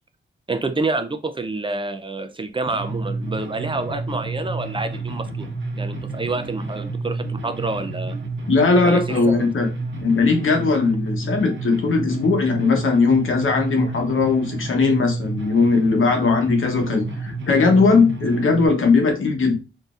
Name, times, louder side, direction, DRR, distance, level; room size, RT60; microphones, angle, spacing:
voice 1, 0.5-5.5 5.8-8.2 8.8-9.5, right 3 dB, 25° right, 8 dB, 0.4 m, -28 dB
sound 1, 2.7-18.7, right 3 dB, 70° right, 0.8 m, -30 dB
voice 2, 8.5-9.7 10.0-19.6, left 4 dB, 80° left, 3 dB, 0.9 m, -19 dB
4.0 x 2.7 x 2.4 m, 0.31 s
wide cardioid pair, 135°, 20 cm